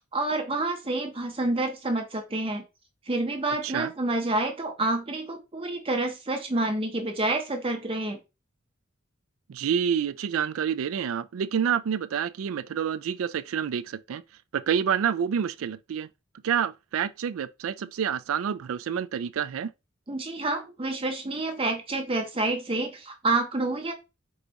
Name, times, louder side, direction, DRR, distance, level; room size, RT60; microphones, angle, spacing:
voice 1, 0.1-2.6 3.1-8.2 20.1-23.9, right 2 dB, 25° right, 0.7 m, -28 dB
voice 2, 9.5-14.2 14.5-16.1 16.4-19.7, right 8 dB, 80° right, 0.4 m, -28 dB
4.8 x 2.4 x 3.9 m
head